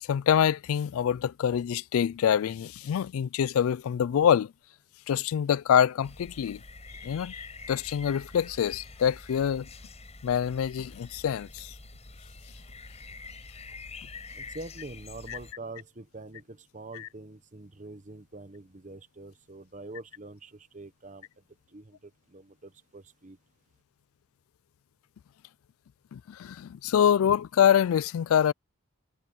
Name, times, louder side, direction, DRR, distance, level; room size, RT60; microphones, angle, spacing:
voice 1, 0.0-4.5 5.1-6.6 7.0-7.4 7.7-9.7 10.2-11.7 15.3-15.4 16.9-17.1 26.1-28.5, left 8 dB, 75° left, 0.3 m, -25 dB
sound 1, 6.0-15.5, left 3 dB, 30° left, 5.3 m, -46 dB
voice 2, 14.3-21.3 21.7-23.4, right 2 dB, 35° right, 1.0 m, -45 dB
head